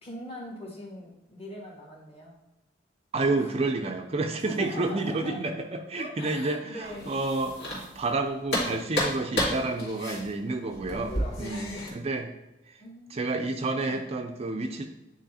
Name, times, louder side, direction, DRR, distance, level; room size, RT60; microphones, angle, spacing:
voice 1, 0.0-2.3 3.4-3.5 4.4-5.5 5.8-7.1 11.3-12.1 12.8-13.4 13.9-14.1, left 1 dB, 35° left, -2 dB, 1.8 m, -41 dB
voice 2, 3.1-12.3 13.1-14.9, right 2 dB, 35° right, 5 dB, 0.5 m, -30 dB
sound 1, 6.8-8.2 8.5-11.9, equal, 65° left, 2.3 m, -31 dB
9.0 x 3.0 x 4.2 m, 0.99 s
head